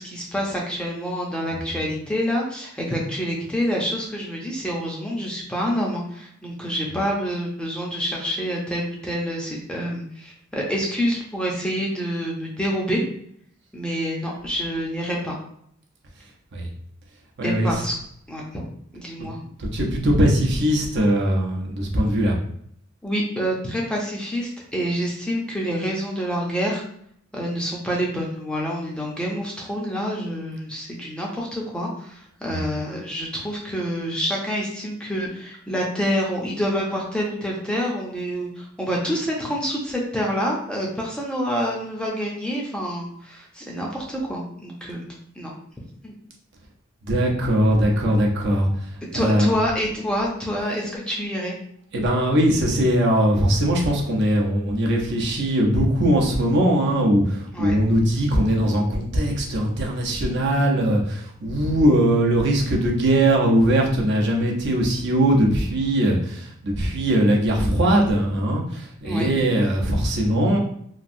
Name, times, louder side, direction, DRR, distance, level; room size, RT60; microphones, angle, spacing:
voice 1, 0.0-13.0 13.7-15.4 17.4-17.9 18.3-19.4 23.0-26.8 27.3-45.0 45.4-45.5 46.0-46.1 49.1-51.6 57.5-57.7 69.0-69.3, equal, 5° left, -3 dB, 0.5 m, -27 dB
voice 2, 17.4-17.8 19.2-19.3 19.6-22.4 32.5-32.6 47.0-48.7 49.1-49.6 51.9-70.6, right 1 dB, 55° right, -1 dB, 0.6 m, -20 dB
3.0 x 2.5 x 2.6 m, 0.66 s
head